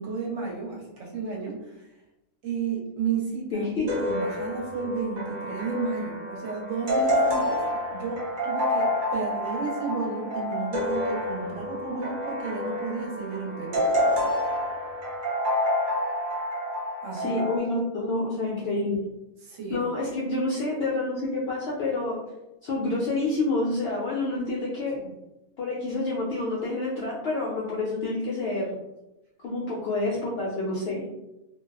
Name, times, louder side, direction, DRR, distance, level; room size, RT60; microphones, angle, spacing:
voice 1, 0.0-1.9 2.4-3.7 4.0-13.9 17.0-17.5 19.4-20.1 25.0-25.1, right 5 dB, 65° right, -3 dB, 1.1 m, -33 dB
voice 2, 3.5-3.9 17.1-19.0 19.7-22.2 22.6-25.0 25.6-28.7 29.4-31.1, left 2 dB, 70° left, -4 dB, 0.6 m, -28 dB
sound 1, 3.9-17.6, left 1 dB, 50° right, 0.6 m, -28 dB
2.5 x 2.2 x 2.3 m, 0.95 s
omnidirectional pair, 1.5 m